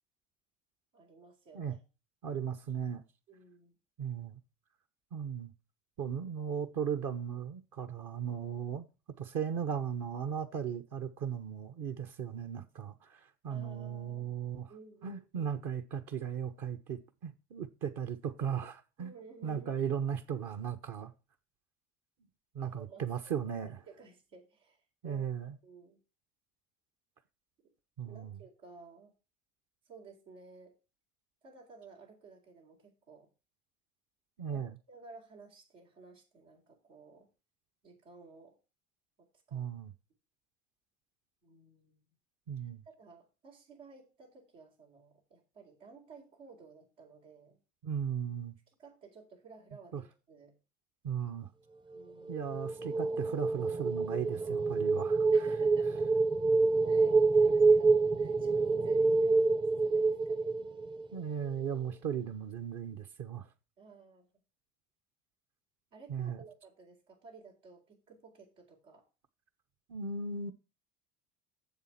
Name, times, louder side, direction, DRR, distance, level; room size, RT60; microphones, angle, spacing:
voice 1, 0.9-1.8 3.3-3.7 13.5-14.3 14.7-15.6 19.0-19.7 22.6-23.5 23.8-25.3 25.6-26.0 28.0-29.1 29.9-30.8 31.4-33.3 34.5-37.3 37.8-38.6 39.5-39.7 41.4-42.1 42.6-47.6 48.8-50.5 51.9-52.5 55.3-56.1 56.9-57.9 58.2-60.6 63.8-64.3 65.9-69.0, right 4 dB, 85° right, 4.1 m, -55 dB
voice 2, 2.2-3.0 4.0-4.4 5.1-5.5 6.0-8.8 9.2-14.7 15.0-19.1 19.4-21.1 22.5-23.8 25.0-25.5 28.0-28.4 34.4-34.7 39.5-39.9 42.5-42.8 47.8-48.6 49.9-50.0 51.0-51.5 52.3-55.3 61.1-63.5 66.1-66.4 69.9-70.5, right 8 dB, 55° right, 1.2 m, -37 dB
sound 1, 52.3-61.2, right 3 dB, 15° right, 0.5 m, -27 dB
7.3 x 7.3 x 5.8 m
hypercardioid pair, 75°, 37 cm